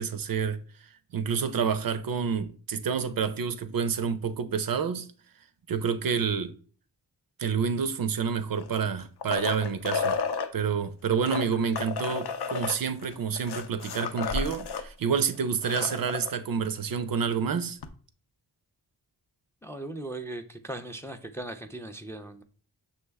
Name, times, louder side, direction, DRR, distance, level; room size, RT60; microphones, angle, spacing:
voice 1, 0.0-5.1 5.7-6.5 7.4-10.2 10.5-17.8, right 6 dB, 55° right, 0.5 m, -29 dB
sound 1, 8.6-10.5 11.1-14.9 15.2-15.3 15.5-16.3 17.8-17.9, left 5 dB, 60° left, 0.6 m, -32 dB
voice 2, 19.6-22.4, right 1 dB, 5° left, 0.4 m, -38 dB
6.1 x 2.1 x 3.3 m
cardioid pair, 40°, 44 cm